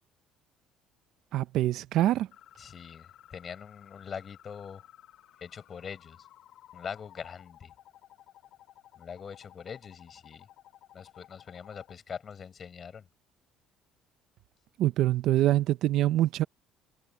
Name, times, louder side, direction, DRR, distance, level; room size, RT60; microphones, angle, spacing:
voice 1, 1.3-2.3 14.8-16.4, right 14 dB, 55° right, 0.5 m, -25 dB
sound 1, 2.3-12.0, left 12 dB, 50° left, 4.1 m, -56 dB
voice 2, 2.6-4.8 5.4-6.3 6.7-7.7 9.0-10.5 10.9-13.1, left 7 dB, 25° left, 4.3 m, -43 dB
cardioid pair, 175°, 0 cm